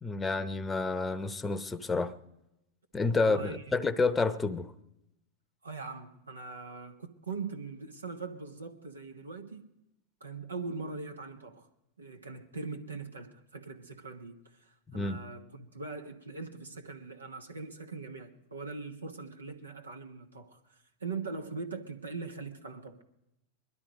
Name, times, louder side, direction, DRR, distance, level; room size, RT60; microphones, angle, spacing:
voice 1, 0.0-2.1 2.9-4.7 14.9-15.2, left 3 dB, 15° left, 0.9 m, -29 dB
voice 2, 3.2-3.6 5.6-9.7 10.2-11.7 12.0-23.0, right 4 dB, 85° right, 1.2 m, -41 dB
20.5 x 12.0 x 5.1 m
figure-of-eight pair, 95°, 0 cm